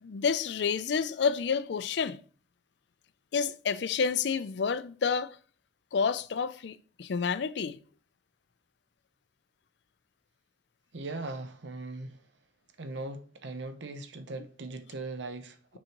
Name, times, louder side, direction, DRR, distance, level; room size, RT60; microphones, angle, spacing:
voice 1, 0.0-2.2 3.3-5.4 5.9-7.8, left 6 dB, 65° left, 0.4 m, -29 dB
voice 2, 10.9-12.2 12.8-15.8, right 2 dB, 70° right, 0.8 m, -39 dB
6.3 x 5.6 x 3.0 m
head